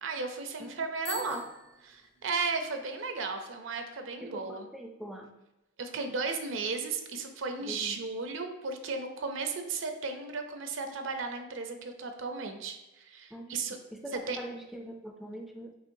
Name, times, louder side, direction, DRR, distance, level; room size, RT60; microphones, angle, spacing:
voice 1, 0.0-1.4 1.9-4.7 5.8-13.8 14.1-14.4, right 4 dB, 70° right, 6 dB, 0.5 m, -35 dB
Bicycle bell, 1.0-2.7, left 2 dB, 60° left, 1.4 m, -45 dB
voice 2, 1.1-1.5 4.2-5.3 7.6-8.0 13.3-13.6 13.9-15.7, right 1 dB, ahead, 2 dB, 0.3 m, -43 dB
5.5 x 3.1 x 2.6 m, 0.99 s
head